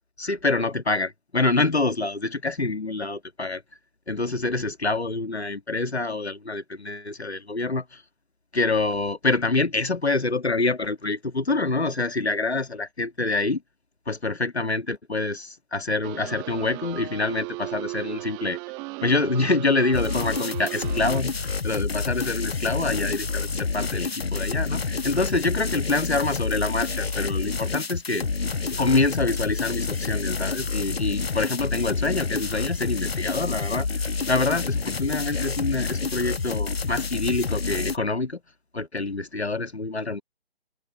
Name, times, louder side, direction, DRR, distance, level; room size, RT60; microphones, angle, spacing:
voice 1, 0.2-3.6 4.1-8.0 8.5-13.6 14.1-18.6 19.0-28.3 28.7-38.4 38.7-40.2, left 3 dB, 85° left, 1.5 m, -26 dB
sound 1, 16.0-21.2, right 28 dB, 10° right, 1.1 m, -36 dB
sound 2, 19.9-38.0, left 4 dB, 70° left, 1.3 m, -28 dB
figure-of-eight pair, 145°, 32 cm